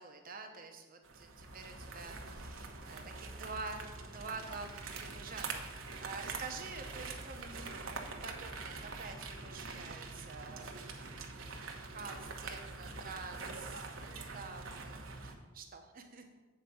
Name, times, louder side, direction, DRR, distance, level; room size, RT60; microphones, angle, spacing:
voice 1, 0.0-11.1 11.6-16.2, right 4 dB, 40° right, 4 dB, 0.9 m, -48 dB
sound 1, 1.0-15.3, right 3 dB, 65° right, 1.0 m, -45 dB
8.1 x 4.9 x 6.9 m, 1.2 s
head